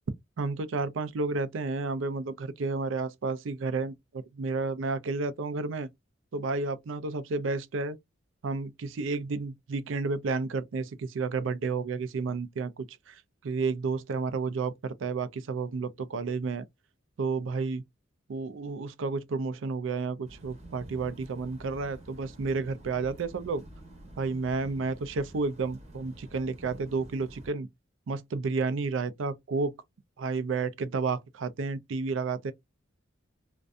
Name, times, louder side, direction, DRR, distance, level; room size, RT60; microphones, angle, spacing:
voice 1, 0.4-5.9 6.3-8.0 8.4-16.7 17.2-17.8 18.3-23.6 24.2-27.7 28.1-29.7 30.2-32.5, right 4 dB, 75° right, 0.4 m, -31 dB
sound 1, 20.2-27.5, right 1 dB, 35° right, 0.8 m, -49 dB
2.5 x 2.2 x 2.4 m
head